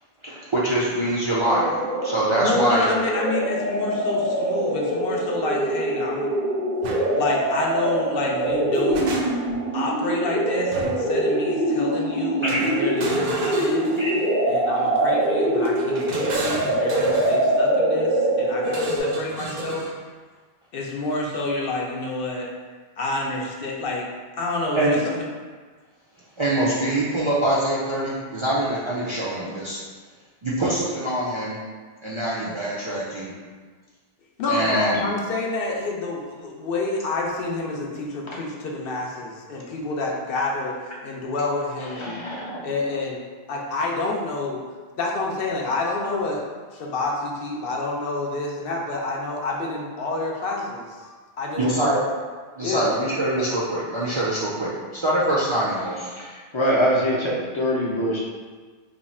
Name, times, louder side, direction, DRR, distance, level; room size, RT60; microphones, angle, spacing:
voice 1, 0.2-1.7 2.0-2.9 12.5-12.6 14.0-14.1 24.7-25.0 26.4-29.8 30.4-31.6 32.0-33.3 34.5-35.1 51.6-52.0 52.6-56.1, right 1 dB, 45° right, -7 dB, 0.4 m, -24 dB
sound 1, 1.4-19.0, right 1 dB, 85° right, 1.3 m, -24 dB
voice 2, 2.4-6.3 7.2-9.2 9.7-13.9 14.5-19.8 20.7-22.5 23.0-24.1 24.3-25.2 34.4-42.2 42.6-43.2 43.5-44.6 45.0-46.4 46.7-52.0 52.6-52.9, left 2 dB, 70° left, -1 dB, 0.8 m, -28 dB
sound 2, 6.8-7.1 8.5-9.6 10.7-11.1 12.5-14.3 15.6-17.4 18.6-20.0, right 2 dB, 65° right, 0.7 m, -33 dB
voice 3, 42.0-42.7 56.1-58.2, equal, 35° left, -4 dB, 0.5 m, -24 dB
2.8 x 2.3 x 4.1 m, 1.5 s
omnidirectional pair, 1.0 m